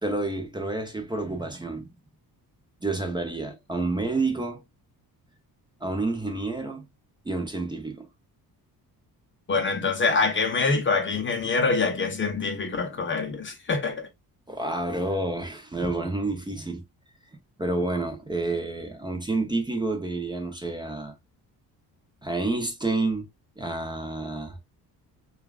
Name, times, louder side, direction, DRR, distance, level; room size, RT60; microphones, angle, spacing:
voice 1, 0.0-1.9 2.8-4.6 5.8-6.9 7.2-8.1 14.5-16.8 17.6-21.1 22.2-23.3 23.6-24.6, right 2 dB, 10° right, 0.7 m, -29 dB
voice 2, 9.5-14.1, left 4 dB, 30° left, 0.7 m, -25 dB
6.6 x 2.4 x 2.3 m
cardioid pair, 155°, 38 cm